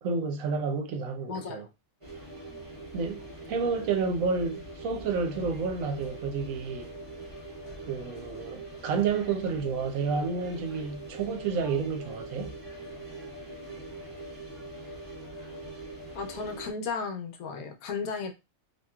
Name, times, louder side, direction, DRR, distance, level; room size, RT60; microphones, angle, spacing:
voice 1, 0.0-1.7 2.9-3.2 3.5-6.9 7.9-12.5, right 5 dB, 75° right, 1.0 m, -30 dB
voice 2, 1.3-1.7 16.1-18.3, left 5 dB, 80° left, 1.1 m, -34 dB
sound 1, 2.0-16.7, right 2 dB, 25° right, 1.0 m, -42 dB
2.9 x 2.6 x 2.3 m
omnidirectional pair, 1.5 m